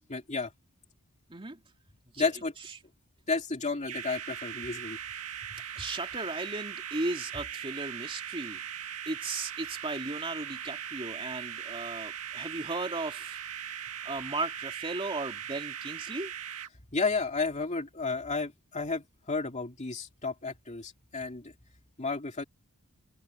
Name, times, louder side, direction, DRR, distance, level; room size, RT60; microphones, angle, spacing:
voice 1, 0.1-0.5 2.2-2.5 3.3-5.0 16.9-21.5 22.0-22.4, left 4 dB, 30° left, 2.5 m, -32 dB
voice 2, 1.3-1.6 2.1-2.3 5.8-8.6 9.1-13.4 14.0-16.3, right 2 dB, 25° right, 2.6 m, -36 dB
sound 1, 3.8-16.7, right 9 dB, 85° right, 1.8 m, -40 dB
head